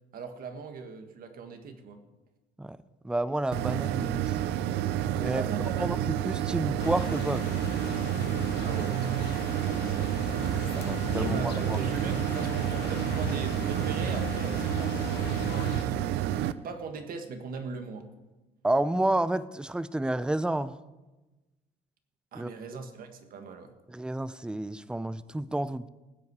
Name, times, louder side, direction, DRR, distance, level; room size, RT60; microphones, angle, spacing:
voice 1, 0.1-2.0 5.2-6.0 8.6-10.1 11.2-16.4 16.6-18.1 22.3-23.7, right 5 dB, 60° right, 6 dB, 1.7 m, -40 dB
voice 2, 3.0-4.4 5.2-5.4 5.8-7.6 10.7-11.8 18.6-20.7 22.3-22.5 23.9-25.9, right 1 dB, 5° right, 16 dB, 0.5 m, -30 dB
sound 1, 3.5-16.5, right 11 dB, 90° right, 0.5 m, -29 dB
sound 2, 6.8-15.9, left 9 dB, 80° left, 0.9 m, -38 dB
19.5 x 8.4 x 4.8 m, 1.1 s
cardioid pair, 110°, 17 cm